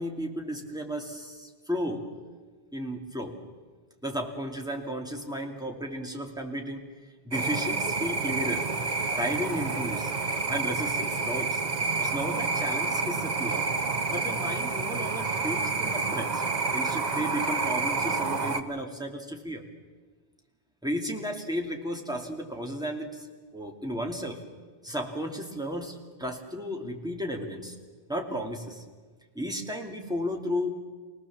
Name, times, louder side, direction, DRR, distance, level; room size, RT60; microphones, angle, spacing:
voice 1, 0.0-2.1 2.7-3.4 4.0-6.8 7.2-8.7 9.2-10.1 10.5-11.6 12.0-13.7 14.1-16.4 16.7-19.6 20.8-23.3 23.5-24.4 24.8-27.8 28.1-28.8 29.3-30.7, equal, 5° right, 1 dB, 2.4 m, -34 dB
sound 1, 7.3-18.6, right 4 dB, 45° right, 1.1 m, -29 dB
25.5 x 18.5 x 7.3 m, 1.4 s
omnidirectional pair, 1.1 m